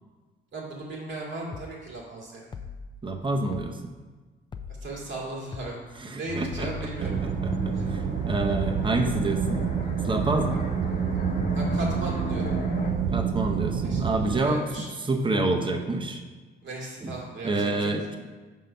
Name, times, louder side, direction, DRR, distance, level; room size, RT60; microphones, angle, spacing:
voice 1, 0.5-2.5 4.8-5.8 6.2-7.2 7.7-7.9 11.5-12.5 13.8-14.0 14.4-14.9 16.6-17.9, right 2 dB, 65° right, -3 dB, 2.1 m, -36 dB
sound 1, 1.5-1.8 2.5-2.9 3.5-3.8 4.5-4.9 5.5-5.8 6.5-6.9 7.5-7.8 8.5-8.9, left 5 dB, 25° left, 0.4 m, -39 dB
voice 2, 3.0-3.8 6.0-6.9 7.2-7.5 7.9-9.6 10.0-10.7 13.1-16.2 17.0-17.2 17.4-18.0, right 2 dB, 25° right, 3 dB, 0.8 m, -28 dB
sound 2, 6.3-12.9, left 2 dB, 50° left, 1.3 m, -35 dB
sound 3, 7.0-14.4, right 7 dB, 45° right, 0.4 m, -28 dB
6.5 x 3.8 x 5.5 m, 1.3 s
cardioid pair, 90°, 20 cm